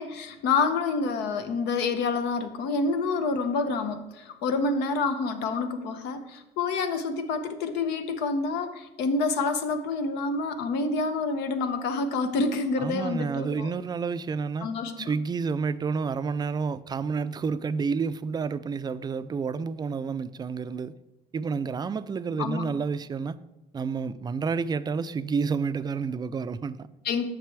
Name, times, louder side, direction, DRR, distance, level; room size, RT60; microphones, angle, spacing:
voice 1, 0.0-13.7 14.6-15.1 22.4-22.7 27.0-27.2, left 4 dB, 90° left, 0.8 m, -28 dB
voice 2, 12.8-14.7 15.0-20.9 21.3-23.4 23.7-26.9, right 5 dB, 25° right, 0.3 m, -29 dB
9.3 x 6.7 x 3.4 m
cardioid pair, 110°, 17 cm